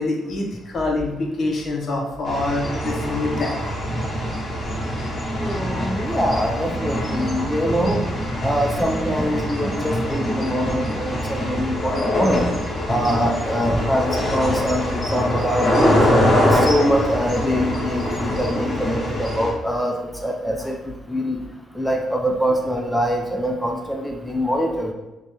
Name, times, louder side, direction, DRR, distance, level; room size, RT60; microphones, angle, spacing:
voice 1, 0.0-3.7, left 2 dB, 55° left, 0 dB, 0.6 m, -25 dB
sound 1, 2.3-19.5, left 1 dB, 35° left, 1.1 m, -24 dB
voice 2, 5.3-8.0 8.4-12.5 12.9-16.0 16.4-19.9 20.2-21.4 21.7-24.9, equal, ahead, 0 dB, 0.3 m, -23 dB
3.2 x 2.1 x 2.7 m, 1.1 s
cardioid pair, 90°, 0 cm